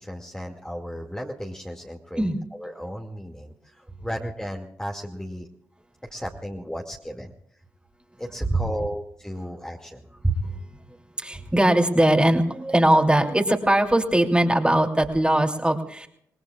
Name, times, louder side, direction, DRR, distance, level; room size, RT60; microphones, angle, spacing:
voice 1, 0.0-5.5 6.1-7.3 8.2-10.0, equal, 10° left, 0 dB, 2.2 m, -35 dB
voice 2, 10.9-16.1, right 1 dB, 10° right, 4 dB, 2.8 m, -21 dB
26.5 x 19.0 x 2.4 m, 0.72 s
supercardioid pair, 45°, 8 cm